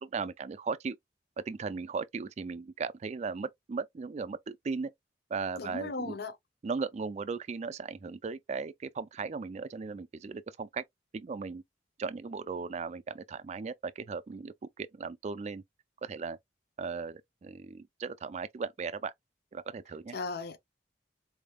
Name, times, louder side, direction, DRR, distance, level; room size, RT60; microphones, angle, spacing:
voice 1, 0.0-1.0 1.5-4.9 5.3-6.2 6.6-10.8 11.1-11.6 12.0-15.6 16.0-16.4 16.8-19.1 19.5-20.2, right 4 dB, 40° right, 0.3 m, -37 dB
voice 2, 5.6-6.4 20.1-20.6, left 3 dB, 60° left, 0.6 m, -36 dB
4.2 x 3.4 x 2.2 m
head